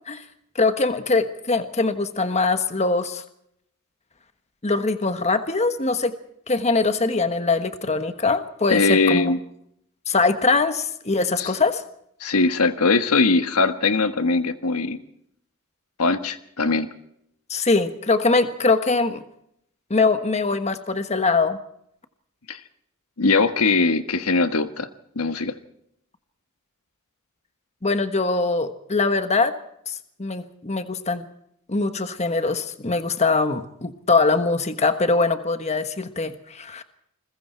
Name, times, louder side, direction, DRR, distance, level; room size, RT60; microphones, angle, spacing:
voice 1, 0.5-3.2 4.6-6.1 6.5-9.3 10.1-11.8 17.5-19.2 19.9-21.6 27.8-29.5 29.9-31.3 31.7-36.8, left 3 dB, 30° left, 9 dB, 1.3 m, -22 dB
voice 2, 8.7-9.4 11.4-11.5 12.2-15.0 16.0-16.9 22.5-22.6 23.2-24.9 25.1-25.5, left 3 dB, 90° left, 9 dB, 1.5 m, -21 dB
29.0 x 21.5 x 4.5 m, 0.74 s
head